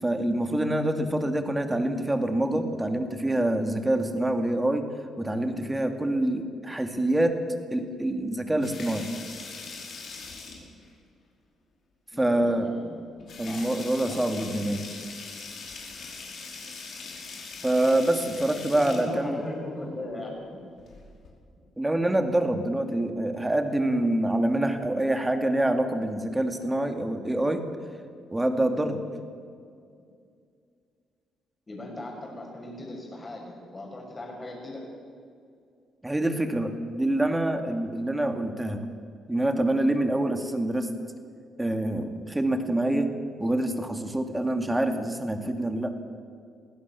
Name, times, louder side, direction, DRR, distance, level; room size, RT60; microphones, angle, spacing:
voice 1, 0.0-4.9 5.2-7.3 7.7-9.1 12.2-12.7 13.4-14.8 17.6-19.4 21.8-27.6 28.3-29.0 36.0-38.8 39.3-40.9 41.6-43.1 43.4-45.9, right 1 dB, 10° right, 6 dB, 2.3 m, -26 dB
sound 1, 8.4-10.8 12.2-12.3 12.7-12.8 13.2-19.0 20.7-21.3, left 4 dB, 60° left, 5.1 m, -41 dB
voice 2, 12.1-13.0 13.5-13.7 14.1-14.8 18.7-20.6 31.7-34.9, left 2 dB, 25° left, 0 dB, 7.1 m, -38 dB
23.0 x 16.0 x 7.1 m, 2.3 s
cardioid pair, 90°, 0 cm